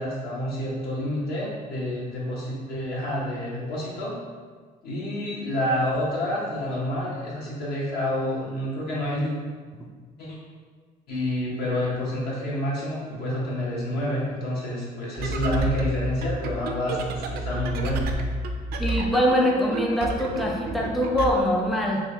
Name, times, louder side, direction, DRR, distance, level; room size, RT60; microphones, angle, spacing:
voice 1, 0.0-4.1 4.8-9.3 10.2-10.4 11.1-18.1, left 1 dB, 70° left, -5 dB, 1.1 m, -28 dB
sound 1, 15.1-21.3, right 1 dB, 65° right, 0.4 m, -30 dB
voice 2, 18.8-22.0, equal, ahead, -1 dB, 0.3 m, -23 dB
3.6 x 2.4 x 3.2 m, 1.5 s
cardioid pair, 110°, 17 cm